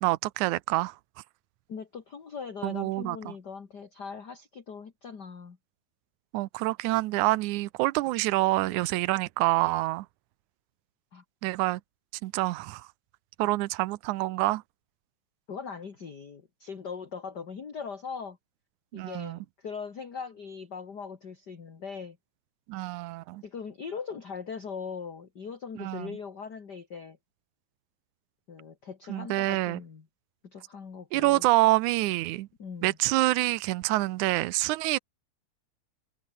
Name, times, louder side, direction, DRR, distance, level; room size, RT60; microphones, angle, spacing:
voice 1, 0.0-1.0 2.6-3.3 6.3-10.1 11.4-11.8 12.2-12.9 13.4-14.6 18.9-19.4 22.7-23.4 25.8-26.1 29.1-29.8 31.1-32.5 32.8-35.0, right 19 dB, 85° right, 2.1 m, -27 dB
voice 2, 1.7-5.6 11.1-11.2 15.5-18.4 18.9-22.2 23.4-27.2 28.5-30.0 30.4-31.5 32.6-33.0, left 6 dB, 35° left, 2.4 m, -40 dB
omnidirectional pair, 3.5 m